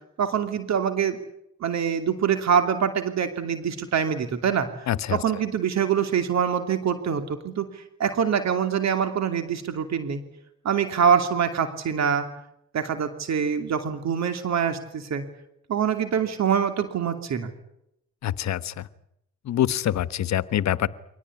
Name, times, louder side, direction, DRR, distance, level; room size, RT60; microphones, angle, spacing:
voice 1, 0.2-1.2 1.6-10.2 10.6-12.3 12.7-15.2 15.7-17.5, right 7 dB, 65° right, 8 dB, 2.8 m, -25 dB
voice 2, 4.9-5.2 18.2-18.9 19.4-20.9, left 11 dB, 65° left, 15 dB, 1.2 m, -25 dB
24.5 x 18.5 x 9.7 m, 0.78 s
cardioid pair, 90°, 30 cm